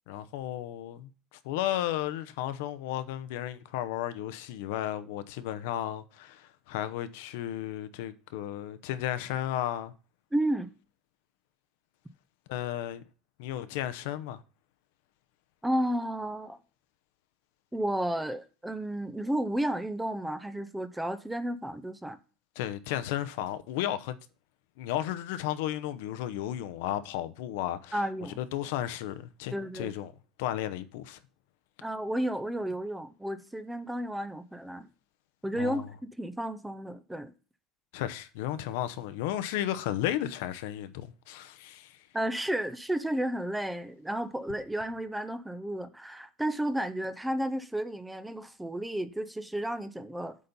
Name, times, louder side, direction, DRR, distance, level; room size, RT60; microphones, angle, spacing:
voice 1, 0.1-9.9 12.5-13.0 13.4-14.4 22.6-24.2 24.8-28.0 28.4-30.1 30.4-31.2 35.6-35.8 37.9-42.0, left 12 dB, 90° left, 0.7 m, -34 dB
voice 2, 10.3-10.7 15.6-16.6 17.7-22.2 27.9-28.4 29.5-29.9 31.8-34.9 35.4-37.3 42.1-50.4, right 1 dB, 5° right, 0.5 m, -32 dB
8.4 x 4.2 x 5.3 m
cardioid pair, 180°, 0 cm